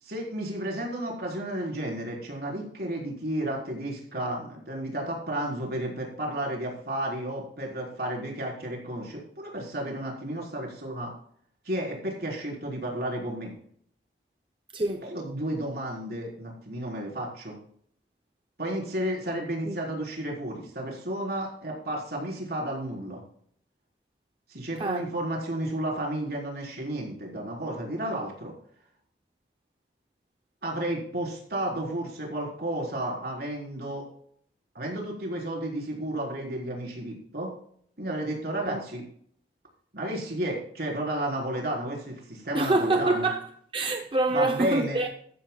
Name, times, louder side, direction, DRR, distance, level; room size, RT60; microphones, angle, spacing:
voice 1, 0.0-11.1 11.6-13.5 15.0-17.6 18.6-23.2 24.5-28.5 30.6-34.0 34.7-37.5 38.0-39.0 39.9-43.3 44.3-45.0, right 1 dB, 60° right, 4.1 m, -32 dB
voice 2, 14.7-15.1 19.7-19.8 24.8-25.0 38.7-38.8 42.5-45.1, right 2 dB, 30° right, 0.6 m, -26 dB
14.0 x 12.5 x 2.3 m
head